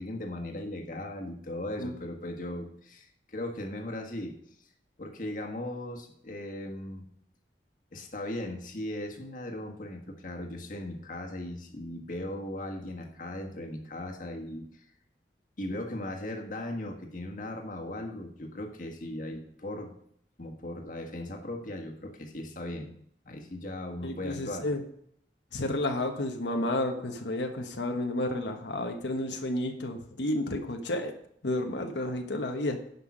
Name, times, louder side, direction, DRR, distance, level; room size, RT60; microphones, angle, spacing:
voice 1, 0.0-4.4 5.0-7.0 7.9-14.8 15.6-19.9 20.4-22.9 23.2-24.7, left 1 dB, 50° left, 3 dB, 1.6 m, -38 dB
voice 2, 24.0-24.8 25.5-31.1 31.4-32.8, left 1 dB, 85° left, 4 dB, 1.2 m, -31 dB
10.5 x 5.8 x 6.0 m, 0.68 s
head